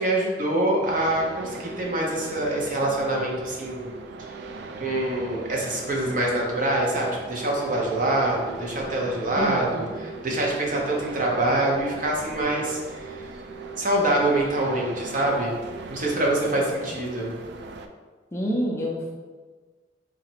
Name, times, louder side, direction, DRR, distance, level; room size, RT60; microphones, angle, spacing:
voice 1, 0.0-3.9 4.8-9.8 10.2-13.1 13.8-15.5 15.9-17.3, right 1 dB, 50° right, -2 dB, 0.7 m, -25 dB
sound 1, 0.8-17.9, right 3 dB, 65° right, 0.3 m, -40 dB
Telephone, 1.2-17.4, right 7 dB, 10° right, 0.8 m, -43 dB
voice 2, 9.4-9.9 16.7-16.8 18.3-19.1, equal, 15° left, -2 dB, 0.4 m, -28 dB
4.1 x 2.4 x 2.8 m, 1.4 s
head